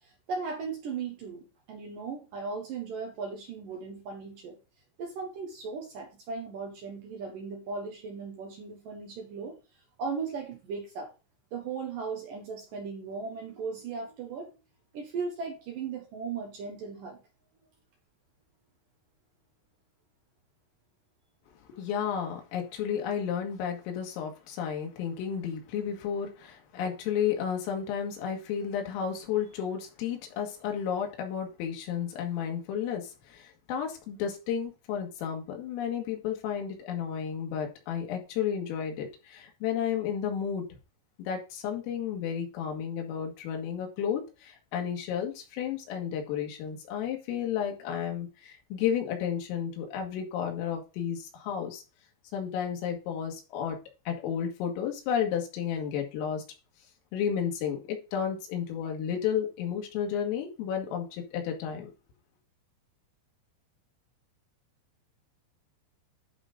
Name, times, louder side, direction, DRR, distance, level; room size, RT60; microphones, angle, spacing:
voice 1, 0.0-4.6 5.0-9.6 10.0-11.1 11.5-14.5 14.9-17.2, right 5 dB, 75° right, 2.0 m, -37 dB
voice 2, 21.7-40.7 41.2-51.8 52.3-53.8 54.1-56.4 57.1-61.9, left 8 dB, 90° left, 4.3 m, -32 dB
11.0 x 3.8 x 4.9 m
omnidirectional pair, 5.8 m